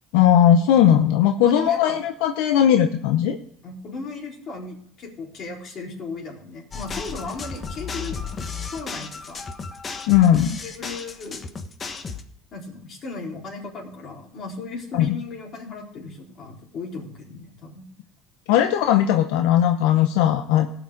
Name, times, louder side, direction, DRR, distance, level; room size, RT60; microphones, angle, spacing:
voice 1, 0.1-3.4 10.1-10.6 14.9-15.2 18.5-20.7, left 10 dB, 85° left, 7 dB, 0.7 m, -18 dB
voice 2, 1.4-2.0 3.6-8.1 8.7-9.5 10.6-11.4 12.5-17.8, left 4 dB, 50° left, -1 dB, 4.1 m, -36 dB
sound 1, 6.7-12.2, left 5 dB, 30° left, 1.2 m, -34 dB
17.0 x 6.1 x 5.1 m, 0.71 s
supercardioid pair, 100°, 0 cm